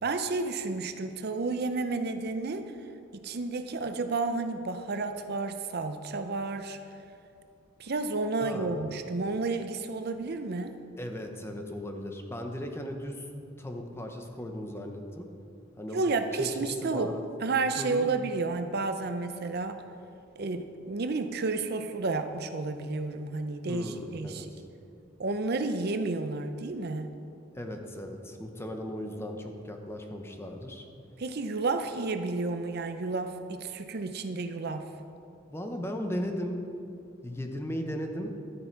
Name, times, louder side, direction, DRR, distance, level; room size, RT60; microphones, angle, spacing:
voice 1, 0.0-2.7 3.2-6.8 7.8-10.8 15.9-19.8 20.4-24.5 25.2-27.1 31.2-34.9, right 3 dB, 55° right, 8 dB, 0.6 m, -31 dB
voice 2, 8.4-8.9 11.0-13.3 13.6-15.3 15.8-16.0 16.3-17.2 17.8-18.1 23.7-24.5 27.5-30.9 35.5-36.6 37.2-38.3, equal, 10° left, 4 dB, 0.9 m, -37 dB
12.5 x 9.3 x 4.6 m, 2.6 s
head